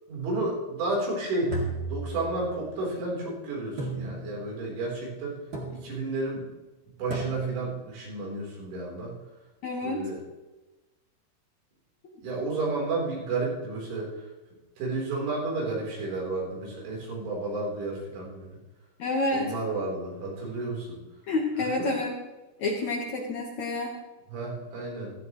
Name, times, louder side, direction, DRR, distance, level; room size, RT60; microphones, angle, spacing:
voice 1, 0.1-1.5 1.9-5.3 5.7-6.5 7.0-9.2 9.8-10.2 12.2-14.1 14.8-18.5 19.3-21.0 21.8-21.9 24.3-25.1, right 2 dB, 75° right, -3 dB, 6.3 m, -31 dB
sound 1, 1.5-2.7 3.8-4.6 5.5-6.1 7.1-7.8, right 3 dB, 35° right, 1.6 m, -35 dB
voice 2, 9.6-10.1 19.0-19.5 21.3-22.1 22.6-23.9, left 2 dB, 70° left, -1 dB, 1.8 m, -28 dB
17.0 x 13.5 x 3.1 m, 1.1 s
omnidirectional pair, 5.5 m